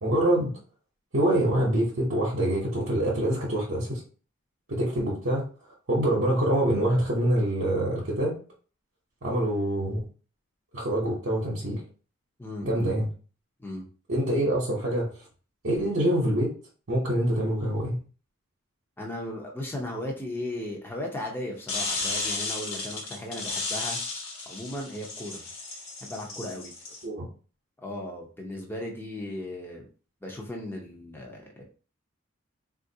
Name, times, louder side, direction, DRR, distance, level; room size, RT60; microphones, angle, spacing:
voice 1, 0.0-0.5 1.1-4.0 4.7-5.4 5.9-8.4 9.2-10.0 10.7-11.8 12.6-13.1 14.1-15.3 15.6-16.5 16.9-18.0 27.0-27.3, right 1 dB, 65° right, -4 dB, 0.8 m, -25 dB
voice 2, 12.4-13.0 13.6-13.9 19.0-24.0 24.5-25.5 26.0-26.7 27.8-29.9 30.2-31.6, left 1 dB, 10° left, -1 dB, 0.6 m, -36 dB
sound 1, 21.7-27.0, left 3 dB, 80° left, 1.1 m, -33 dB
3.6 x 2.4 x 2.7 m, 0.38 s
head